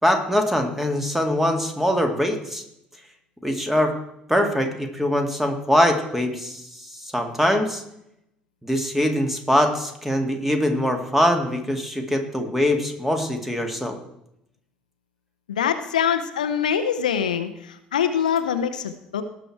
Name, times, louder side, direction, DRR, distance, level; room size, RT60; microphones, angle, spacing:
voice 1, 0.0-2.6 3.4-3.9 4.3-6.6 6.9-7.8 8.6-14.0, equal, 5° right, 5 dB, 2.1 m, -22 dB
voice 2, 15.5-19.2, left 8 dB, 80° left, 10 dB, 0.7 m, -24 dB
18.0 x 6.2 x 4.6 m, 0.80 s
figure-of-eight pair, 55°, 4 cm